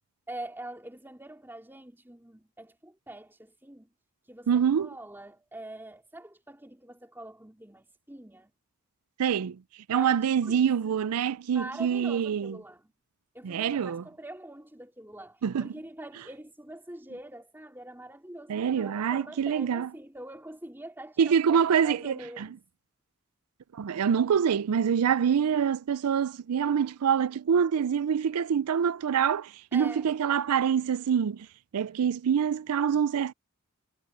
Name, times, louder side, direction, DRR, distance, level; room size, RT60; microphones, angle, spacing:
voice 1, 0.3-3.9 4.3-8.5 9.9-11.0 11.5-12.9 13.3-22.6 29.7-30.1, right 1 dB, 10° right, 3.4 m, -44 dB
voice 2, 4.5-4.9 9.2-9.6 9.9-12.6 13.4-14.0 15.4-15.7 18.5-19.9 21.2-22.1 23.7-31.5 31.7-33.3, right 7 dB, 85° right, 0.4 m, -25 dB
head